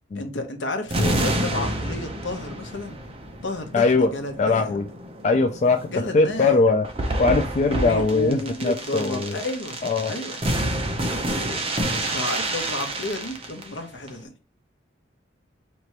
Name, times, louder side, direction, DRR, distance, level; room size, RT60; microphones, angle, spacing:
voice 1, 0.2-3.0 3.4-4.7 5.9-6.6 7.7-9.8 10.1-10.4 12.1-14.3, left 1 dB, 70° left, 0.8 m, -31 dB
sound 1, 0.9-13.8 14.1-14.2, right 1 dB, 30° right, 0.6 m, -29 dB
voice 2, 3.7-4.1 4.4-4.9 5.2-6.9 7.2-9.4 9.8-10.1, left 3 dB, 35° left, 0.3 m, -21 dB
4.5 x 3.0 x 2.9 m
head